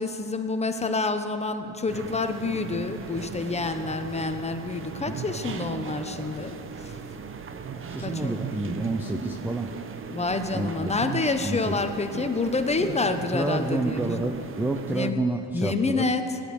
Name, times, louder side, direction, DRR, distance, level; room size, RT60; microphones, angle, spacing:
voice 1, 0.0-6.6 6.8-6.9 8.0-8.4 10.1-14.3 14.9-15.2 15.5-16.4, left 3 dB, 15° left, 7 dB, 0.8 m, -28 dB
sound 1, 1.9-15.1, right 6 dB, 30° right, 0.7 m, -37 dB
voice 2, 5.1-5.4 7.9-9.7 10.5-10.9 11.4-11.9 13.3-16.0, right 2 dB, 5° right, 5 dB, 0.3 m, -29 dB
17.0 x 10.5 x 6.9 m, 2.8 s
cardioid pair, 125°, 47 cm